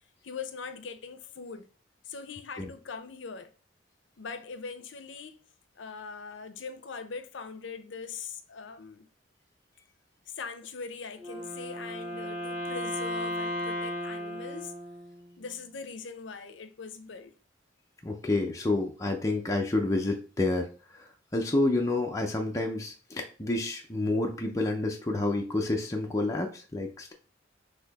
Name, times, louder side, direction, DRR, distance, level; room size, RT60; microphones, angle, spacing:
voice 1, 0.2-1.7 2.0-3.5 4.2-5.4 5.8-9.1 10.3-14.7 15.4-17.3, left 5 dB, 70° left, 0.6 m, -41 dB
Wind instrument woodwind instrument, 11.2-15.4, equal, 30° right, 1.8 m, -35 dB
voice 2, 18.0-27.1, left 2 dB, 15° left, 0.5 m, -29 dB
4.2 x 2.8 x 4.0 m
head